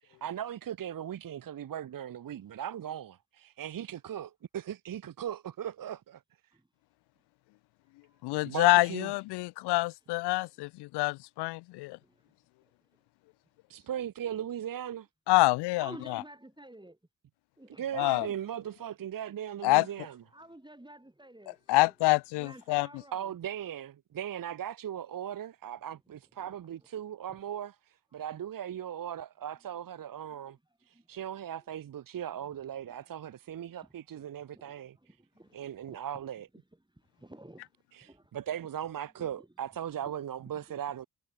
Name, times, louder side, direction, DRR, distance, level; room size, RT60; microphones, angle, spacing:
voice 1, 0.0-6.2 8.4-9.1 13.7-15.1 17.7-20.2 23.1-30.6 30.9-35.0 35.5-36.5 37.9-41.1, right 10 dB, 55° right, 1.1 m, -38 dB
voice 2, 8.2-12.0 15.3-16.2 17.9-18.3 19.6-19.9 21.5-22.9, left 22 dB, 80° left, 0.6 m, -26 dB
voice 3, 15.8-17.0 17.6-18.3 19.7-19.8 20.3-21.9 22.4-23.3 30.3-30.4 30.9-31.0 33.8-34.3 34.5-35.6 35.9-36.0 37.2-37.6 38.0-38.3 39.2-39.5, right 1 dB, 10° right, 5.8 m, -51 dB
hypercardioid pair, 40°, 40 cm